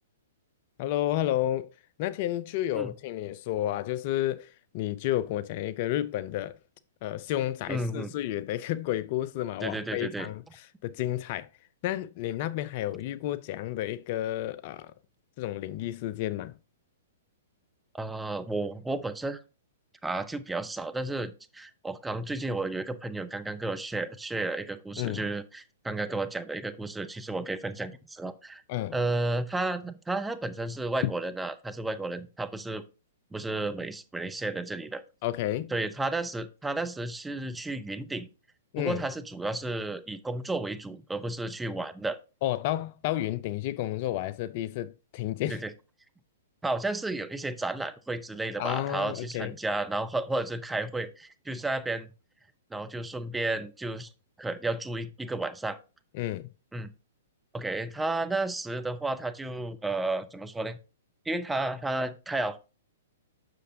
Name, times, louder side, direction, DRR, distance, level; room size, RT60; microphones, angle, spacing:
voice 1, 0.8-1.7 2.0-6.6 7.0-10.4 10.8-11.5 11.8-14.9 15.4-16.5 25.0-25.2 28.7-29.0 31.0-31.1 35.2-35.7 38.7-39.0 42.4-45.6 48.6-49.5 56.1-56.5, left 13 dB, 45° left, 0.4 m, -31 dB
voice 2, 7.7-8.1 9.6-10.3 17.9-19.4 20.0-28.6 28.9-32.8 33.3-35.0 35.7-38.3 38.8-42.2 45.5-45.7 46.6-52.1 52.7-54.1 54.4-55.8 56.7-56.9 57.5-60.8 61.2-62.6, right 2 dB, 5° right, 0.7 m, -32 dB
7.7 x 6.4 x 2.7 m
figure-of-eight pair, 115°, 0 cm